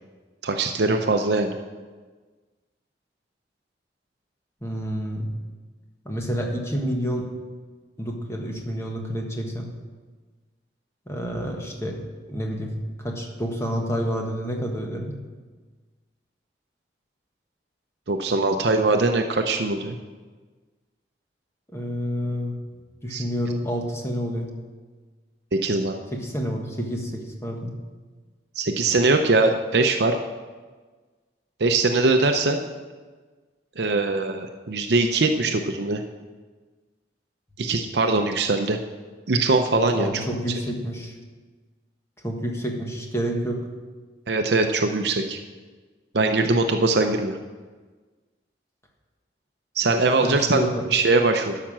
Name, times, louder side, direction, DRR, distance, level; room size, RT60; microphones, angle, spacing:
voice 1, 0.4-1.6 18.1-20.0 23.1-23.2 25.5-26.0 28.5-30.2 31.6-32.6 33.8-36.0 37.6-38.8 39.3-40.2 44.3-45.4 46.1-47.4 49.8-51.6, right 3 dB, 65° right, 5 dB, 0.6 m, -21 dB
voice 2, 4.6-5.3 6.0-7.3 8.0-9.7 11.1-12.0 12.3-15.1 21.7-22.6 23.0-24.5 26.1-27.7 39.9-41.1 42.2-43.7 50.2-50.8, equal, 15° left, 1 dB, 1.5 m, -29 dB
12.0 x 5.8 x 7.4 m, 1.4 s
head